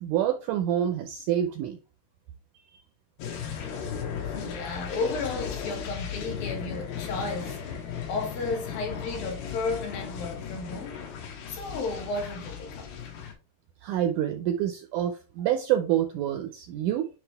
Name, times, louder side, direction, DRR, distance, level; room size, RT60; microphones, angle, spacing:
voice 1, 0.0-1.8 13.8-17.1, right 11 dB, 85° right, 1.8 m, -27 dB
sound 1, 3.2-13.3, left 7 dB, 85° left, 3.2 m, -36 dB
voice 2, 4.3-11.0 11.5-12.9, left 3 dB, 70° left, 3.1 m, -33 dB
9.8 x 3.3 x 3.4 m
omnidirectional pair, 4.3 m